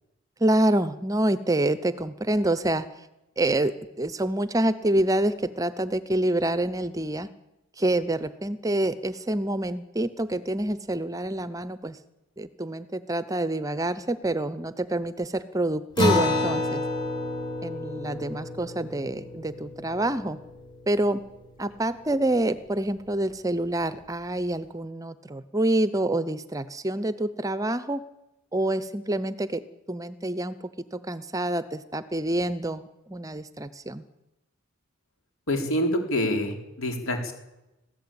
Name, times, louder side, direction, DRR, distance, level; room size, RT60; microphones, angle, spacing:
voice 1, 0.4-3.1 3.4-7.3 7.8-12.0 12.4-16.8 17.6-20.4 20.9-21.2 21.6-28.0 28.5-29.6 29.9-34.0, right 1 dB, 15° right, 14 dB, 0.7 m, -27 dB
Acoustic guitar, 16.0-20.9, left 2 dB, 20° left, 3.5 m, -29 dB
voice 2, 35.5-37.3, left 1 dB, 70° left, 4 dB, 4.0 m, -26 dB
21.5 x 15.0 x 8.8 m, 0.96 s
head